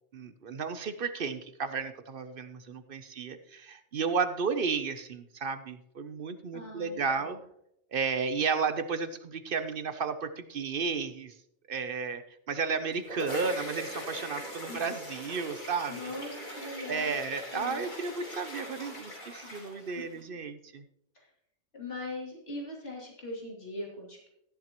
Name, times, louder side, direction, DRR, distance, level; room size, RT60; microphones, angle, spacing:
voice 1, 0.1-7.4 7.9-11.3 11.7-12.2 12.5-16.0 16.9-20.8, right 5 dB, 55° right, 10 dB, 0.9 m, -33 dB
voice 2, 6.5-7.4 14.7-14.8 15.9-17.2 17.5-17.9 19.4-20.2 21.1-21.3 21.7-24.3, left 2 dB, 60° left, -3 dB, 3.2 m, -41 dB
sound 1, 12.7-20.2, left 1 dB, 45° left, 3.6 m, -41 dB
14.0 x 10.5 x 3.0 m, 0.77 s
omnidirectional pair, 1.2 m